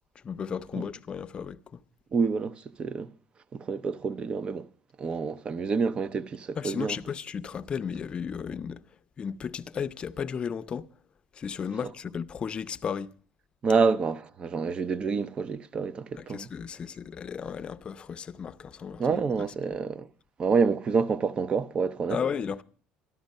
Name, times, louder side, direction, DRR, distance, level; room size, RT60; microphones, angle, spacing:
voice 1, 0.2-1.8 6.6-8.8 9.2-10.9 11.3-13.1 16.2-19.2 19.7-19.8 22.1-22.6, left 7 dB, 35° left, 0.6 m, -34 dB
voice 2, 2.1-3.1 3.5-4.7 5.0-7.0 13.6-16.5 19.0-20.1 20.4-22.2, right 5 dB, 35° right, 0.7 m, -27 dB
13.0 x 11.5 x 5.4 m
cardioid pair, 115°, 3 cm